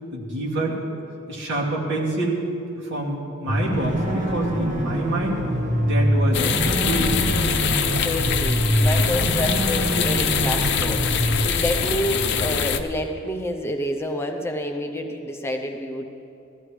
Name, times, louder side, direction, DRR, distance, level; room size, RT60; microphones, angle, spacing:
voice 1, 0.1-0.8 1.3-2.5 2.8-5.4 5.8-7.2, right 1 dB, 65° right, -4 dB, 2.4 m, -26 dB
sound 1, 3.5-11.4, right 1 dB, 40° right, 1.4 m, -24 dB
sound 2, 6.3-12.8, left 6 dB, 60° left, 0.6 m, -24 dB
voice 2, 7.9-16.0, left 1 dB, 10° left, 3 dB, 0.6 m, -28 dB
17.5 x 13.5 x 3.3 m, 2.7 s
head